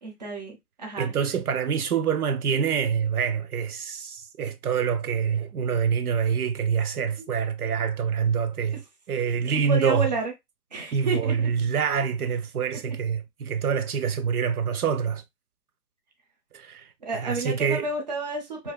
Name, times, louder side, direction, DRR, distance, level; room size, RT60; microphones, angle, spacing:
voice 1, 0.0-1.1 9.5-10.3 10.7-11.5 12.9-13.0 17.0-18.7, right 3 dB, 30° right, 0.7 m, -30 dB
voice 2, 1.0-8.8 9.1-10.1 10.9-15.2 16.5-17.8, right 7 dB, 70° right, 0.5 m, -26 dB
4.6 x 2.6 x 2.2 m
hypercardioid pair, 170°, 46 cm